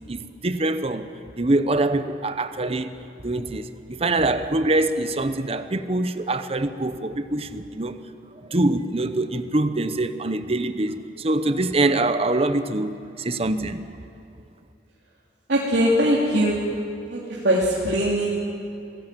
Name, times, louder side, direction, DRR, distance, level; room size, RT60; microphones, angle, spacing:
voice 1, 0.1-1.0 1.4-2.9 3.2-8.0 8.4-13.8, right 2 dB, 35° right, 10 dB, 0.9 m, -24 dB
voice 2, 15.5-16.6 17.1-18.3, equal, 80° right, -5 dB, 3.0 m, -21 dB
25.0 x 17.5 x 7.5 m, 2.7 s
head